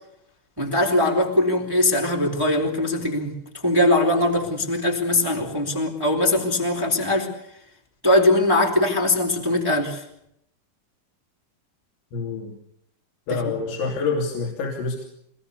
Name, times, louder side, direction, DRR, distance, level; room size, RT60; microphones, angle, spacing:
voice 1, 0.6-3.4 3.6-7.3 8.0-10.0 13.3-13.4, left 1 dB, 5° right, 1 dB, 3.1 m, -21 dB
voice 2, 12.1-12.6 13.3-15.1, left 4 dB, 80° left, 0 dB, 5.2 m, -27 dB
25.5 x 21.0 x 6.9 m, 0.75 s
omnidirectional pair, 5.2 m